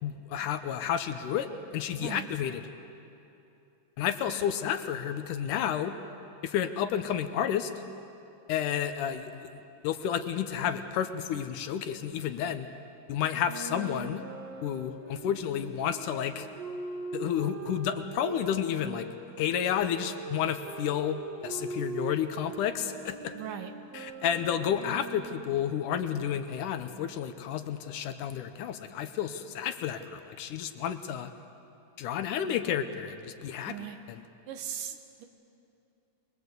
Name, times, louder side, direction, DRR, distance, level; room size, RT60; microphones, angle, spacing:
voice 1, 0.0-2.7 4.0-6.0 6.4-7.7 8.5-9.5 9.8-12.7 13.1-14.2 14.6-16.5 17.1-19.1 19.4-23.4 23.9-31.3 32.0-34.2, left 9 dB, 75° left, 9 dB, 2.3 m, -31 dB
voice 2, 2.0-2.3 23.3-23.7 33.7-34.0 34.5-35.3, right 9 dB, 75° right, 7 dB, 2.7 m, -39 dB
sound 1, 13.3-19.1 19.9-25.5, right 3 dB, 50° right, 2.9 m, -41 dB
24.5 x 21.0 x 8.1 m, 2.7 s
omnidirectional pair, 3.9 m